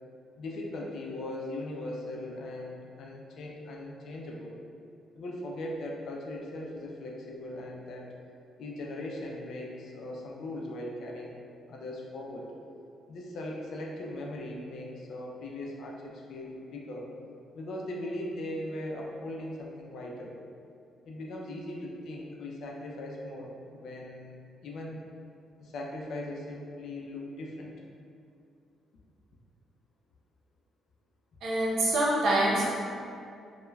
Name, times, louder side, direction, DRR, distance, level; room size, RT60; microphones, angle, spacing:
voice 1, 0.4-4.5 5.2-8.1 8.6-11.4 11.7-12.5 13.1-17.1 17.5-20.4 21.0-24.3 24.6-25.0 25.6-27.7, left 1 dB, 70° left, -2 dB, 0.4 m, -39 dB
voice 2, 31.4-32.7, right 1 dB, 70° right, -5 dB, 0.6 m, -25 dB
3.1 x 2.1 x 2.2 m, 2.5 s
cardioid pair, 90°, 0 cm